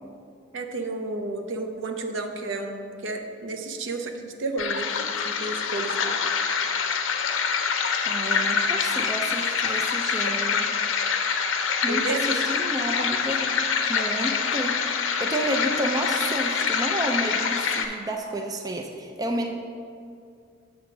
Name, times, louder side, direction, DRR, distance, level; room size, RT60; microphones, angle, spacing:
voice 1, 0.5-6.2 11.5-12.4, right 2 dB, 75° right, 5 dB, 0.6 m, -32 dB
sound 1, 4.6-17.8, left 6 dB, 75° left, 0.6 m, -25 dB
voice 2, 8.0-10.7 11.8-13.6 13.9-19.5, right 1 dB, 20° right, 3 dB, 0.4 m, -31 dB
7.6 x 3.7 x 6.0 m, 2.3 s
head